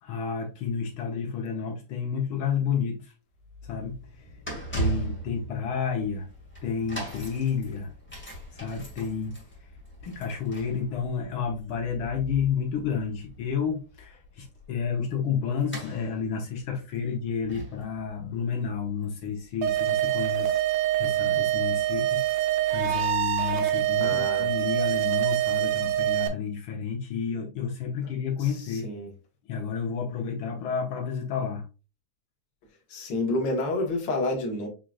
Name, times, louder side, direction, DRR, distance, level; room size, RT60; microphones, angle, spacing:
voice 1, 0.0-3.1 3.6-4.4 4.7-6.3 6.6-7.9 8.5-9.4 10.0-20.6 21.0-28.9 29.4-31.6, left 6 dB, 80° left, 1.1 m, -31 dB
sound 1, 3.4-20.3 21.0-21.1, right 2 dB, 5° left, 0.8 m, -39 dB
sound 2, 19.6-26.3, right 13 dB, 80° right, 2.1 m, -25 dB
voice 2, 24.0-24.5 28.4-29.1 32.9-34.7, left 2 dB, 55° left, 1.3 m, -29 dB
6.2 x 3.7 x 2.3 m
omnidirectional pair, 3.6 m